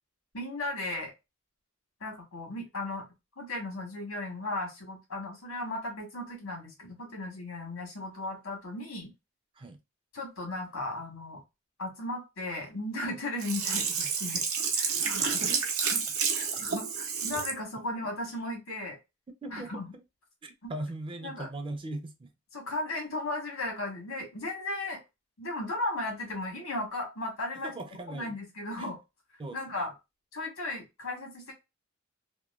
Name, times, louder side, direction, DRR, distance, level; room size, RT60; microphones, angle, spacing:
voice 1, 0.3-1.1 2.0-3.1 3.4-9.1 10.1-11.4 11.8-14.4 14.8-15.5 15.9-16.0 16.3-19.0 19.5-19.9 20.6-20.7 21.2-21.5 22.5-25.0 25.4-27.7 28.1-29.0 29.5-29.9 30.3-31.5, left 2 dB, 90° left, 1.3 m, -36 dB
Sink (filling or washing), 13.4-17.6 18.0-18.1, right 6 dB, 90° right, 0.6 m, -30 dB
voice 2, 15.1-15.6 19.4-19.8 20.4-22.3 27.6-28.4 28.8-28.9 29.4-29.6, right 2 dB, 25° right, 0.4 m, -39 dB
2.9 x 2.2 x 2.3 m
head